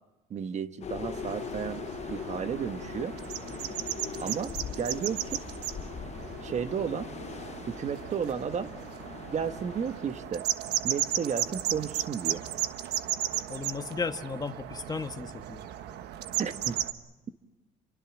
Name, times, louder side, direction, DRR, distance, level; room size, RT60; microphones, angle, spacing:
voice 1, 0.3-3.2 4.2-5.4 6.4-7.1 7.7-8.7 9.3-10.4 10.8-12.4 16.4-16.8, right 7 dB, 45° right, 10 dB, 1.3 m, -33 dB
sound 1, 0.8-10.4, left 8 dB, 40° left, 0.9 m, -41 dB
sound 2, 1.1-16.9, right 12 dB, 85° right, 1.3 m, -35 dB
voice 2, 13.5-15.6, left 4 dB, 25° left, 8 dB, 1.3 m, -35 dB
29.0 x 24.0 x 6.1 m, 1.1 s
cardioid pair, 110°, 17 cm